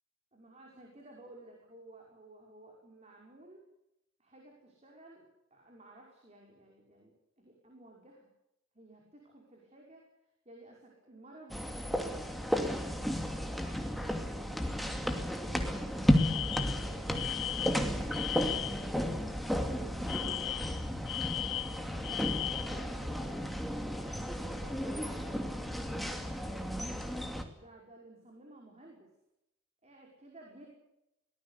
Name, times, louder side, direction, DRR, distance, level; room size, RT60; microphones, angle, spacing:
voice 1, 0.3-3.7 4.2-8.3 8.7-10.0 10.5-15.0 15.8-20.7 21.5-26.2 27.6-29.1 29.8-30.7, right 2 dB, 30° right, -1 dB, 5.5 m, -55 dB
sound 1, 11.5-27.4, equal, ahead, 2.6 m, -33 dB
Alarm, 16.1-18.9 20.1-22.8, left 14 dB, 65° left, 1.2 m, -37 dB
23.5 x 19.0 x 8.5 m, 0.85 s
head